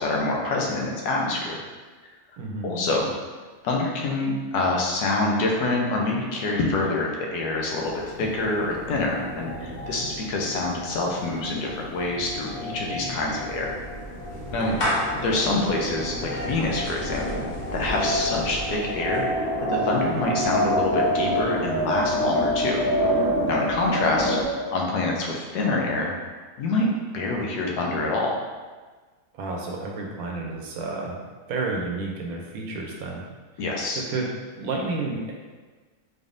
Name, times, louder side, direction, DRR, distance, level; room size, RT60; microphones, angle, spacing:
voice 1, 0.0-1.6 2.6-3.1 3.6-7.9 8.2-13.8 14.5-14.7 15.2-17.4 17.7-22.8 23.5-26.1 26.6-28.4 33.6-34.0, left 2 dB, 90° left, -1 dB, 1.2 m, -26 dB
voice 2, 2.4-2.7 14.6-14.8 29.3-31.2 31.5-33.2 34.1-34.3 34.6-35.3, right 3 dB, 70° right, 0 dB, 1.0 m, -30 dB
sound 1, 7.8-24.4, equal, 65° left, 1.2 m, -28 dB
Clapping / Meow, 13.0-19.3, equal, 45° left, 0.8 m, -34 dB
3.9 x 3.4 x 2.5 m, 1.4 s
omnidirectional pair, 1.7 m